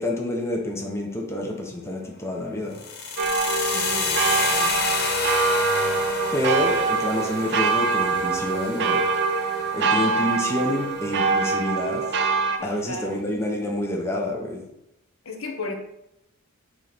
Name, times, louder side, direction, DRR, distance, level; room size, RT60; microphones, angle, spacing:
voice 1, 0.0-2.8 6.3-9.0 9.7-12.1 12.6-14.6, left 1 dB, 10° left, -1 dB, 0.9 m, -28 dB
sound 1, 2.7-10.8, left 4 dB, 50° left, 0.8 m, -30 dB
sound 2, 3.2-12.6, right 4 dB, 55° right, 0.6 m, -24 dB
voice 2, 3.7-4.8 12.6-13.2 15.2-15.7, left 2 dB, 75° left, 3 dB, 1.0 m, -35 dB
Wind instrument woodwind instrument, 5.0-11.7, right 2 dB, 5° right, 0.4 m, -32 dB
7.4 x 3.2 x 4.0 m, 0.84 s
head